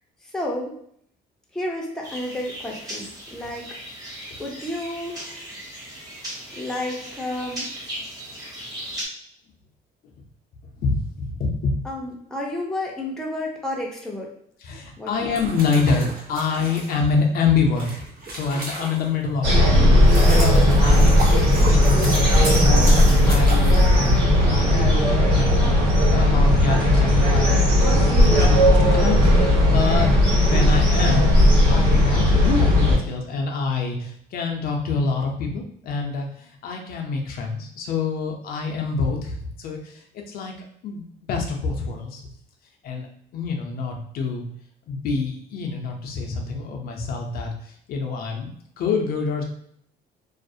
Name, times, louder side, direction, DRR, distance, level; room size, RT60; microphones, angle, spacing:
voice 1, 0.2-0.8 1.5-3.7 4.4-5.4 6.5-7.7 11.8-14.3 15.0-15.3, left 1 dB, 5° left, -2 dB, 0.5 m, -31 dB
sound 1, 2.0-9.1, right 1 dB, 20° right, 1.0 m, -37 dB
voice 2, 10.8-11.8 14.6-18.0 18.3-19.6 20.0-23.8 24.2-25.7 26.1-27.5 27.8-30.1 30.4-31.3 31.6-40.0 40.3-40.5 40.8-42.2 42.8-43.1 43.3-44.4 44.9-48.5 48.8-49.4, left 4 dB, 65° left, 1 dB, 0.5 m, -26 dB
sound 2, 15.2-19.3 19.8-24.5, right 2 dB, 60° right, 0.8 m, -33 dB
sound 3, 19.4-33.0, left 1 dB, 80° right, 1.3 m, -16 dB
2.4 x 2.0 x 2.6 m, 0.66 s
cardioid pair, 110°, 17 cm